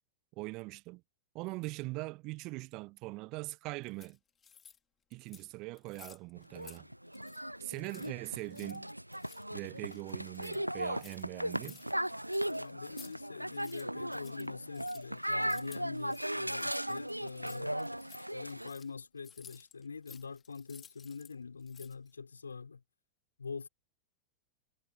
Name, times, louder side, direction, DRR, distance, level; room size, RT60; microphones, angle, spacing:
voice 1, 0.4-1.0 1.3-4.2 5.1-6.9 7.6-8.9 9.5-11.8, right 23 dB, 40° right, 1.3 m, -42 dB
sound 1, 3.8-4.8 5.1-5.5 5.8-6.8 7.1-7.4 7.7-13.2 13.4-21.3 21.6-22.1, left 7 dB, 20° left, 4.4 m, -56 dB
sound 2, 6.4-18.7, right 1 dB, 90° right, 0.6 m, -37 dB
voice 2, 12.4-17.8 18.3-22.8 23.4-23.7, left 5 dB, 75° left, 5.5 m, -44 dB
figure-of-eight pair, 90°, 0 cm